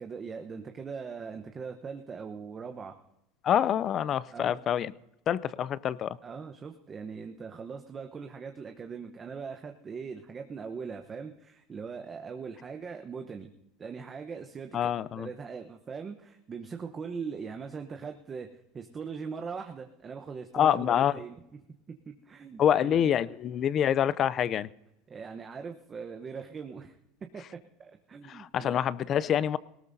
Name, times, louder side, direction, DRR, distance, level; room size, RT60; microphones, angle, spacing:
voice 1, 0.0-3.0 4.3-4.6 6.2-13.5 13.8-21.3 21.9-23.3 25.1-27.0 27.3-28.8, right 5 dB, 25° right, 0.9 m, -41 dB
voice 2, 3.4-4.9 5.3-6.2 14.7-15.3 20.5-21.1 22.6-24.7 28.3-29.6, left 9 dB, 40° left, 0.4 m, -26 dB
19.0 x 17.5 x 2.7 m
supercardioid pair, 120°, 0 cm